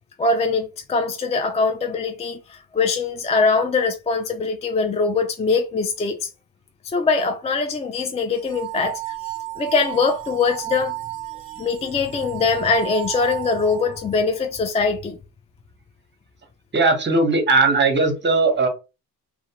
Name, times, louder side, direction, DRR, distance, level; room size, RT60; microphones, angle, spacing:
voice 1, 0.2-6.3 6.8-9.0 9.6-10.9 11.6-15.2, left 4 dB, 20° left, 0.3 m, -22 dB
sound 1, 8.3-14.2, right 18 dB, 65° right, 0.5 m, -33 dB
voice 2, 16.7-18.7, right 3 dB, 30° right, 0.9 m, -18 dB
2.4 x 2.1 x 2.8 m
supercardioid pair, 70°, 38 cm